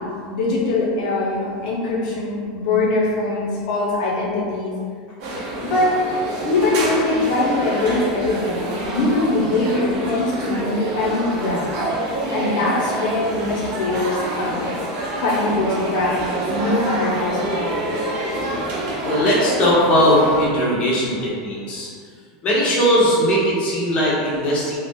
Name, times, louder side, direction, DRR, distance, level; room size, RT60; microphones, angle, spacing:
voice 1, 0.0-4.7 5.6-6.1 6.4-11.6 12.3-14.7 15.2-16.2 16.5-18.0 21.1-21.2, left 2 dB, 75° left, -4 dB, 0.5 m, -22 dB
sound 1, 5.2-20.5, right 1 dB, 50° right, 0.6 m, -27 dB
voice 2, 19.0-21.9 22.4-24.8, equal, 30° left, -7 dB, 0.9 m, -19 dB
2.8 x 2.1 x 3.5 m, 2.1 s
supercardioid pair, 140°, 4 cm